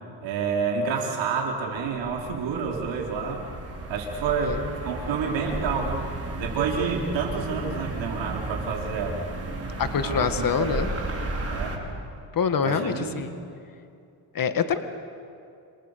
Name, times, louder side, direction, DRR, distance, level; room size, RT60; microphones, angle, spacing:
voice 1, 0.2-3.4 3.9-6.1 6.4-9.2 10.0-10.8 11.5-11.8 12.6-13.3, right 5 dB, 75° right, 0 dB, 4.7 m, -29 dB
sound 1, 1.5-11.8, right 2 dB, 30° right, 5.7 m, -34 dB
voice 2, 9.8-10.9 12.3-13.3 14.3-14.8, left 7 dB, 50° left, 8 dB, 2.0 m, -25 dB
29.0 x 27.5 x 6.9 m, 2.5 s
supercardioid pair, 70°, 45 cm